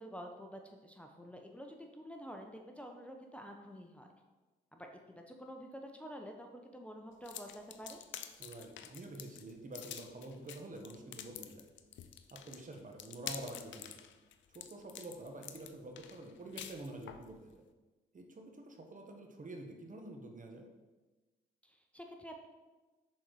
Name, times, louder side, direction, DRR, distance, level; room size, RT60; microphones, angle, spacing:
voice 1, 0.0-4.1 4.7-4.9 5.2-8.0 21.6-22.5, equal, 5° left, 2 dB, 0.9 m, -49 dB
sound 1, 7.2-17.3, left 10 dB, 75° left, 0.5 m, -48 dB
voice 2, 8.4-11.7 12.3-14.0 14.5-17.5 18.1-20.7, right 2 dB, 40° right, 3 dB, 1.2 m, -48 dB
6.3 x 4.2 x 4.7 m, 1.2 s
supercardioid pair, 50°, 19 cm